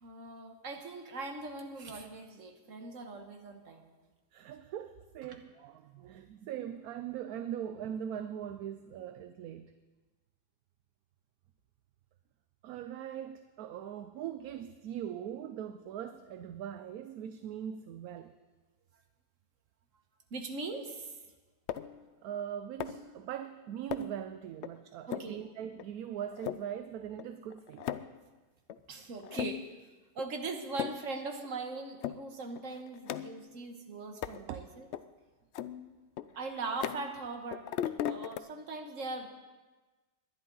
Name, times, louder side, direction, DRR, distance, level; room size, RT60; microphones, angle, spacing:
voice 1, 0.0-4.0 20.3-21.2 25.1-25.4 28.9-29.6 30.1-34.9 36.3-37.6 38.0-39.3, right 3 dB, 50° right, 1.6 m, -40 dB
voice 2, 4.3-9.7 12.6-18.3 22.2-27.9 34.5-34.6, right 9 dB, 70° right, 1.0 m, -41 dB
sound 1, 21.7-22.0 22.8-23.1 23.9-24.2 24.6-24.7 25.1-25.4 25.8-25.9 26.3-26.6 27.2-27.3 27.5-28.2 28.7-28.8 29.2-29.8 30.2-30.3 30.7-31.1 31.4-31.5 32.0-32.2 32.6-33.5 34.2-34.4 34.9-35.0 35.5-37.3 37.5-38.4, left 10 dB, 85° left, 0.6 m, -38 dB
20.5 x 11.0 x 3.9 m
omnidirectional pair, 1.7 m